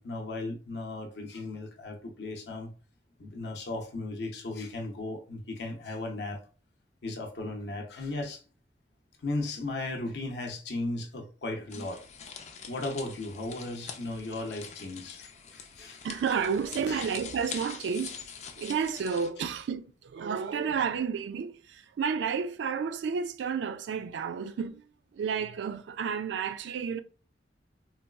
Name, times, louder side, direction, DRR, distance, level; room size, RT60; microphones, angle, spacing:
voice 1, 0.0-2.7 3.2-6.4 7.0-8.4 9.2-12.0 12.7-16.0 16.9-17.1 19.4-19.5, left 2 dB, 70° left, 0.7 m, -36 dB
sound 1, 11.7-19.3, left 6 dB, 40° left, 0.4 m, -44 dB
voice 2, 16.0-18.2 18.6-24.8 25.2-27.0, right 6 dB, 80° right, 0.3 m, -31 dB
4.0 x 2.3 x 2.3 m
head